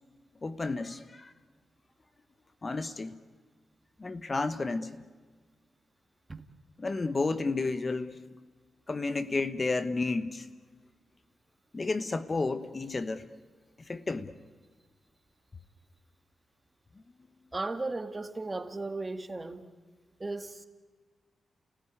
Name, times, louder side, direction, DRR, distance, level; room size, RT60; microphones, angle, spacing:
voice 1, 0.4-1.3 2.6-3.1 4.0-5.0 6.8-8.2 8.9-10.5 11.7-13.2 13.9-14.3, left 3 dB, 30° left, 1.0 m, -31 dB
voice 2, 17.5-19.7 20.2-20.7, right 2 dB, 25° right, 1.7 m, -36 dB
30.0 x 17.5 x 9.7 m
cardioid pair, 100°, 0 cm